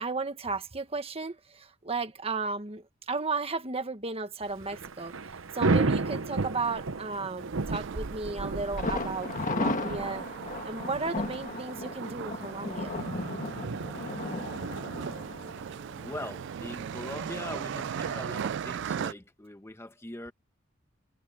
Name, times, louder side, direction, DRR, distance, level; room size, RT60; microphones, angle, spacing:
voice 1, 0.0-5.1 5.5-10.2 10.6-13.0, right 3 dB, 30° right, 1.4 m, -34 dB
Thunder / Rain, 4.5-17.1, right 3 dB, 80° right, 0.9 m, -34 dB
sound 1, 7.4-19.1, right 8 dB, 60° right, 0.3 m, -38 dB
Thunder, 8.8-16.5 16.8-16.9 17.3-17.4, left 3 dB, 40° left, 1.5 m, -35 dB
voice 2, 15.9-20.3, left 1 dB, 15° left, 1.0 m, -41 dB
head